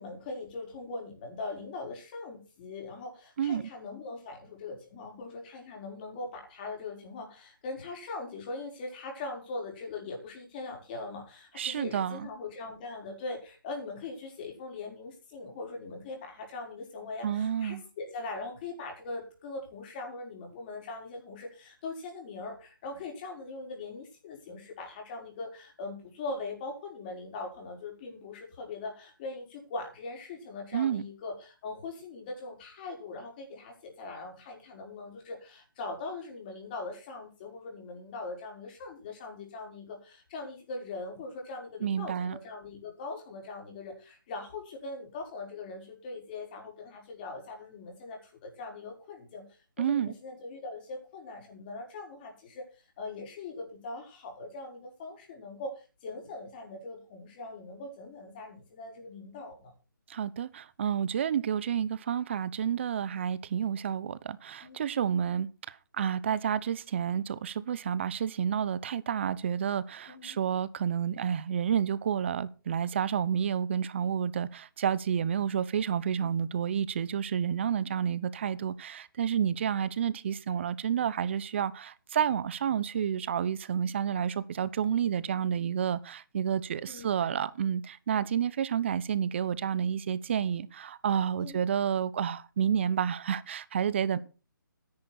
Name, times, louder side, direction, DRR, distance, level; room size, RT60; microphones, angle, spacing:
voice 1, 0.0-49.4 49.8-52.7 53.0-59.7 64.6-64.9 70.1-70.4 76.2-76.4 86.9-87.1 91.4-91.6, left 3 dB, 25° left, 5.4 m, -41 dB
voice 2, 11.6-12.3 17.2-17.8 30.7-31.0 41.8-42.4 49.8-50.1 60.1-94.2, right 8 dB, 35° right, 0.9 m, -30 dB
13.5 x 10.5 x 4.4 m
hypercardioid pair, 165°, 11 cm